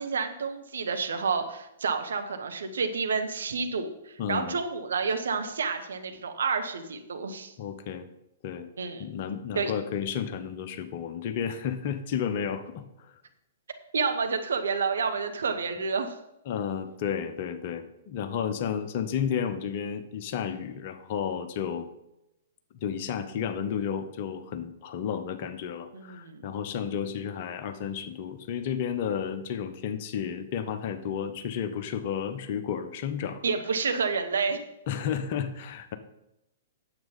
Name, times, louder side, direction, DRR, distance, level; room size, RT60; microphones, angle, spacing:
voice 1, 0.0-7.5 8.8-9.1 9.5-9.7 13.9-16.1 25.9-26.5 33.4-34.6, right 5 dB, 60° right, 6 dB, 1.2 m, -29 dB
voice 2, 4.2-4.6 7.6-8.1 8.4-8.7 9.0-13.1 16.5-21.9 22.8-33.4 34.9-36.0, left 8 dB, 40° left, 9 dB, 1.0 m, -32 dB
9.3 x 7.6 x 5.4 m, 0.86 s
figure-of-eight pair, 110°, 0 cm